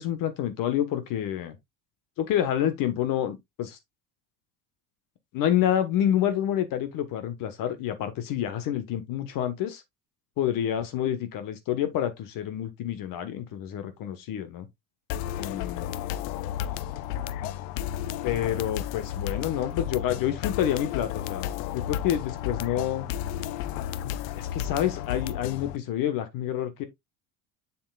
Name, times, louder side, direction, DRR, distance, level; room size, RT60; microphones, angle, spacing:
voice 1, 0.0-1.6 2.2-3.8 5.3-9.8 10.4-14.7 15.4-16.0 18.2-23.1 24.0-26.8, left 10 dB, 55° left, 1.3 m, -28 dB
sound 1, 15.1-25.8, left 11 dB, 80° left, 0.7 m, -33 dB
7.3 x 7.2 x 2.3 m
cardioid pair, 135°, 40 cm